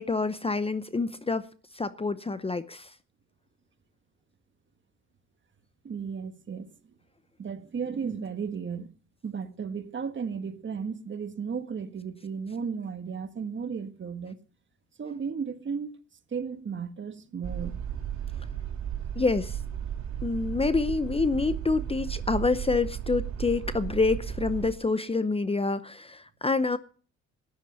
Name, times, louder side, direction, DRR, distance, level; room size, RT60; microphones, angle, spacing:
voice 1, 0.0-1.4 1.7-2.9 19.1-19.6 20.2-26.8, left 3 dB, 20° left, 0.7 m, -27 dB
voice 2, 5.8-6.7 7.4-8.9 9.2-14.4 15.0-15.9 16.3-17.8, right 6 dB, 40° right, 1.6 m, -34 dB
sound 1, 17.4-24.7, right 9 dB, 70° right, 3.1 m, -34 dB
13.5 x 10.5 x 7.0 m
cardioid pair, 90°, 30 cm